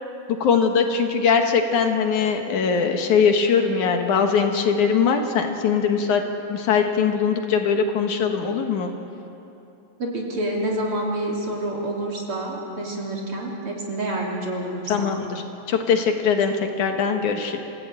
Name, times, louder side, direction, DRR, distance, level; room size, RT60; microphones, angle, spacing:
voice 1, 0.4-6.2 6.5-8.9 14.9-17.6, left 6 dB, 70° left, 4 dB, 2.7 m, -21 dB
voice 2, 10.0-15.2, right 1 dB, 45° right, -2 dB, 3.7 m, -28 dB
28.0 x 15.5 x 8.9 m, 2.9 s
omnidirectional pair, 3.7 m